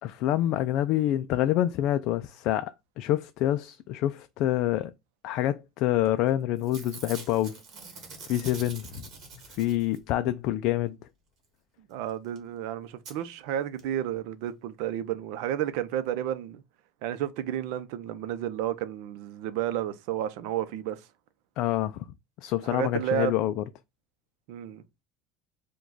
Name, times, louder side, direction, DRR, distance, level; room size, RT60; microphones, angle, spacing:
voice 1, 0.0-4.9 5.2-7.6 8.3-9.1 9.6-11.0 21.6-22.1 22.4-23.6, left 13 dB, 50° left, 0.3 m, -27 dB
Packing tape duct tape / Tearing, 6.0-6.3 6.6-10.2 12.1-12.2 12.3-12.4 13.0-13.1 13.8-13.9 14.1-14.2, right 4 dB, 35° right, 1.5 m, -45 dB
voice 2, 11.9-16.6 17.0-21.0 22.7-23.3 24.5-24.8, right 11 dB, 70° right, 0.6 m, -31 dB
4.9 x 2.3 x 3.9 m
cardioid pair, 165°, 0 cm